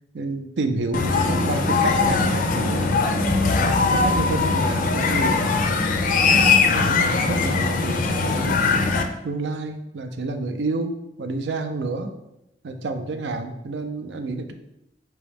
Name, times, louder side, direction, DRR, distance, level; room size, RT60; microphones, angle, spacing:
voice 1, 0.1-3.6 3.9-5.5 5.9-12.1 12.6-14.5, right 3 dB, 75° right, 6 dB, 0.5 m, -29 dB
sound 1, 0.9-9.0, left 4 dB, 50° left, 0.4 m, -20 dB
4.5 x 3.0 x 3.5 m, 0.86 s
head